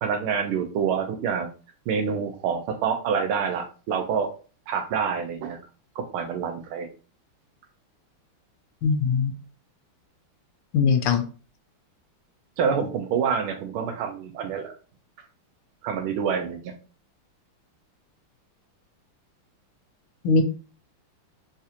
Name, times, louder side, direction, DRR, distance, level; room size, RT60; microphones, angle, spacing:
voice 1, 0.0-1.5 1.9-4.3 4.7-5.6 6.0-6.9 12.6-14.7 15.8-16.7, right 6 dB, 85° right, 6 dB, 1.6 m, -27 dB
voice 2, 8.8-9.3 10.7-11.2 20.2-20.4, left 5 dB, 80° left, 7 dB, 1.4 m, -20 dB
4.2 x 2.4 x 2.8 m, 0.36 s
omnidirectional pair, 2.4 m